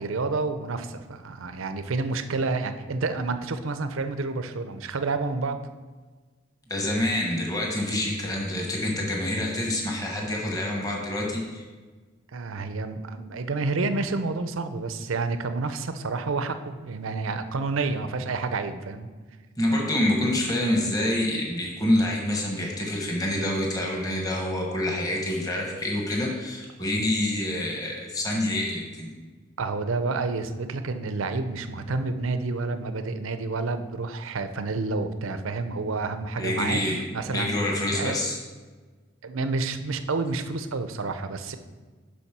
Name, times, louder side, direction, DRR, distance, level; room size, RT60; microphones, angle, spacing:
voice 1, 0.0-5.6 12.3-19.1 29.6-37.6 37.9-38.1 39.2-41.6, right 3 dB, 80° right, 9 dB, 0.6 m, -29 dB
voice 2, 6.7-11.6 19.6-29.1 36.4-37.0 37.3-38.4, left 1 dB, 20° left, -1 dB, 1.1 m, -27 dB
7.0 x 5.1 x 6.0 m, 1.4 s
head